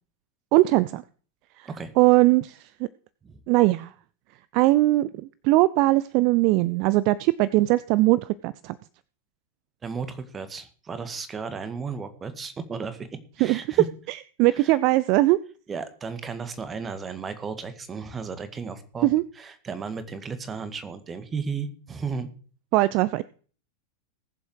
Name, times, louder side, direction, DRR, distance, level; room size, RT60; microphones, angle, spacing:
voice 1, 0.5-1.0 1.6-1.7 2.0-2.9 3.5-3.9 4.5-8.8 13.4-13.6 14.1-15.4 19.0-19.2 22.7-23.2, right 19 dB, 45° right, 19 dB, 0.5 m, -20 dB
voice 2, 9.8-13.1 13.4-13.9 14.5-14.7 15.7-19.1 19.4-22.3, right 5 dB, 20° right, 11 dB, 1.8 m, -34 dB
20.0 x 7.3 x 4.8 m, 0.43 s
figure-of-eight pair, 90°, 0 cm